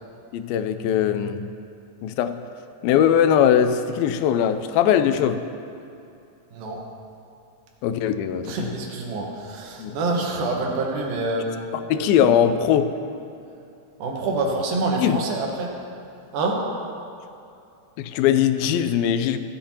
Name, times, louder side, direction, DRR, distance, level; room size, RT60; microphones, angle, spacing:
voice 1, 0.3-1.5 2.0-2.4 2.8-5.4 7.8-8.5 9.8-10.0 11.9-12.9 15.0-15.2 18.0-19.4, left 9 dB, 85° left, 10 dB, 2.4 m, -20 dB
voice 2, 8.5-11.7 14.0-15.7 16.3-16.6, right 2 dB, 75° right, 0 dB, 3.0 m, -26 dB
16.0 x 12.0 x 2.9 m, 2.6 s
omnidirectional pair, 4.2 m